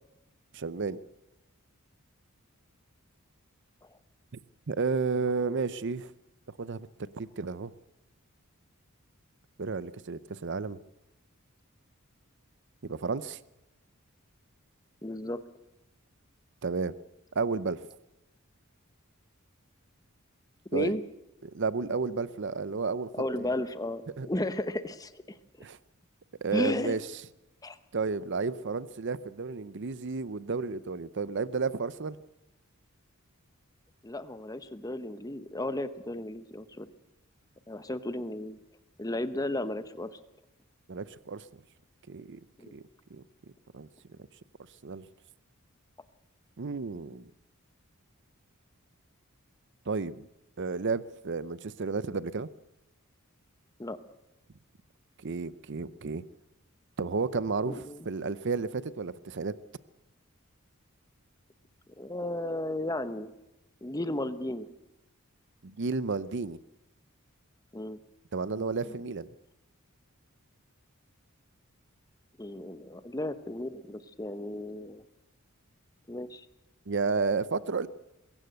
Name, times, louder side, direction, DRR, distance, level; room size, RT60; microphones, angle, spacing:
voice 1, 0.5-1.0 4.7-6.1 6.6-6.9 7.2-7.7 9.6-10.8 12.8-13.4 16.6-16.9 17.3-17.8 20.7-21.0 21.4-23.1 23.4-23.5 24.2-24.3 25.6-25.8 26.4-27.0 27.9-32.2 40.9-41.4 42.1-42.4 42.7-42.8 43.1-43.2 43.7-43.9 44.8-45.0 46.6-47.2 49.9-50.2 50.6-52.5 55.2-56.2 57.0-59.5 65.6-66.6 68.3-69.3 76.9-77.9, right 4 dB, 55° right, 17 dB, 0.6 m, -32 dB
voice 2, 15.0-15.4 20.7-21.0 23.1-25.4 26.5-27.0 27.6-27.8 34.0-36.9 37.7-38.6 39.0-40.2 42.6-42.7 53.8-54.0 57.7-58.0 62.0-63.3 63.8-64.7 67.7-68.0 68.5-69.0 72.4-75.0 76.1-76.5, left 1 dB, 15° left, 12 dB, 0.9 m, -34 dB
21.5 x 16.5 x 7.9 m, 0.92 s
head